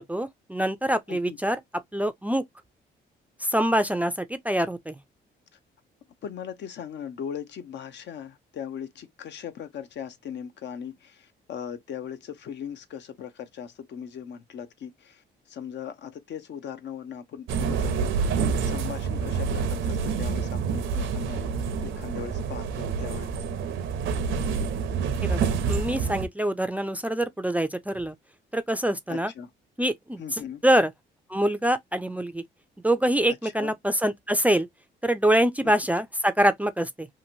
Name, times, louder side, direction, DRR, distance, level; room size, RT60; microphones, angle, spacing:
voice 1, 0.0-1.6 1.9-2.4 3.4-4.9 25.2-28.1 28.5-29.3 29.8-30.9 31.3-32.4 32.8-34.7 35.0-37.1, right 1 dB, 5° right, 0.4 m, -25 dB
voice 2, 6.2-21.5 21.8-23.3 29.1-29.5 30.2-30.6 33.4-33.7 35.6-35.7, left 8 dB, 65° left, 0.6 m, -39 dB
sound 1, 17.5-26.3, right 5 dB, 80° right, 0.6 m, -27 dB
2.9 x 2.6 x 2.7 m
cardioid pair, 90°, 20 cm